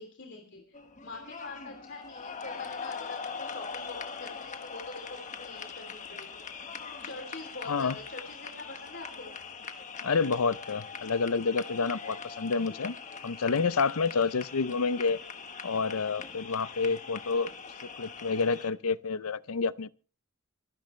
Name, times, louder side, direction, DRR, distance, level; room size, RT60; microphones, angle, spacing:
voice 1, 0.0-6.4 7.0-9.3 14.1-14.3, left 3 dB, 55° left, 3.3 m, -45 dB
sound 1, 0.7-18.7, left 5 dB, 35° left, 1.4 m, -42 dB
voice 2, 10.0-13.0 13.2-15.2 15.6-17.5 18.0-19.9, left 4 dB, 80° left, 0.6 m, -29 dB
25.0 x 10.5 x 3.3 m
head